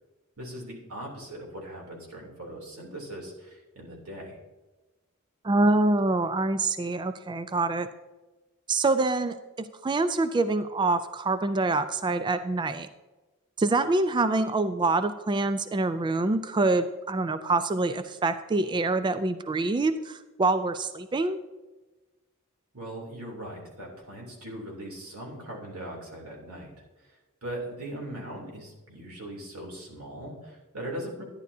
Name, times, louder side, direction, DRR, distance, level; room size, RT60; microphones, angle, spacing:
voice 1, 0.4-4.4 22.7-31.2, right 1 dB, 90° right, -1 dB, 3.0 m, -40 dB
voice 2, 5.4-7.9 8.7-12.9 13.6-21.4, right 2 dB, 20° right, 11 dB, 0.3 m, -26 dB
11.5 x 10.5 x 2.7 m, 1.2 s
head